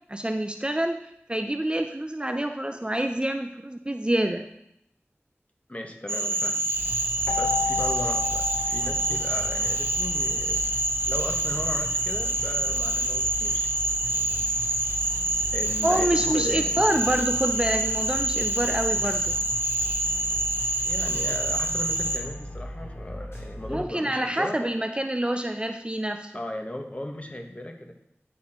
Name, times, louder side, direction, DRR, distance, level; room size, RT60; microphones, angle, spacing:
voice 1, 0.1-1.0 1.3-4.4 15.8-19.4 23.7-26.3, right 1 dB, 20° right, 6 dB, 0.5 m, -27 dB
voice 2, 5.7-6.7 7.3-10.6 11.1-13.7 15.5-16.8 20.8-24.6 26.3-27.9, left 1 dB, 30° left, 3 dB, 1.1 m, -36 dB
Cricket / Frog, 6.1-22.2, right 1 dB, 55° right, 0.9 m, -26 dB
sound 1, 6.7-23.8, equal, 60° left, 2.9 m, -38 dB
Keyboard (musical), 7.3-9.9, left 5 dB, 90° left, 0.7 m, -32 dB
9.7 x 4.2 x 4.3 m, 0.76 s
wide cardioid pair, 45°, 5 cm